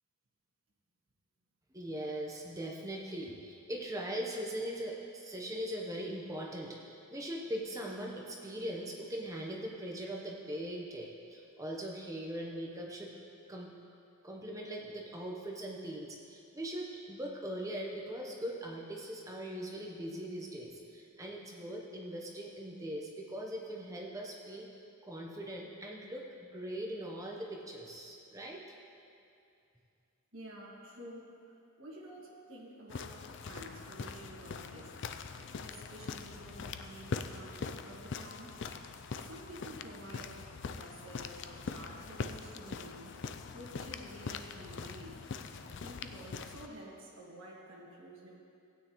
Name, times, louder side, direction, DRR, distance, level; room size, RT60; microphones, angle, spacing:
voice 1, 1.7-13.1 13.5-13.7 14.2-24.7 25.0-28.6, right 1 dB, 15° right, -1 dB, 0.8 m, -40 dB
voice 2, 30.3-34.9 35.6-38.5 39.3-43.2 43.5-45.2 45.6-48.4, right 1 dB, 60° right, -5 dB, 1.9 m, -50 dB
sound 1, 32.9-46.7, left 5 dB, 55° left, 0.4 m, -42 dB
16.0 x 9.1 x 3.1 m, 2.5 s
head